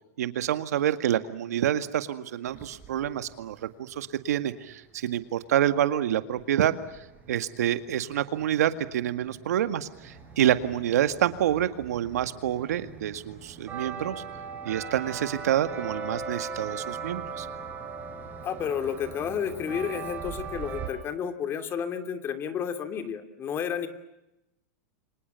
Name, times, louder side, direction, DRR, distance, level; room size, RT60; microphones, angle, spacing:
voice 1, 0.2-6.7 7.3-14.2 14.6-17.5, right 11 dB, 80° right, 10 dB, 2.0 m, -27 dB
sound 1, 2.4-3.3 6.4-6.5 6.6-20.9, right 5 dB, 20° right, 5.9 m, -40 dB
voice 2, 18.4-23.9, left 8 dB, 30° left, 8 dB, 2.9 m, -31 dB
30.0 x 25.5 x 7.0 m, 0.90 s
supercardioid pair, 135°, 8 cm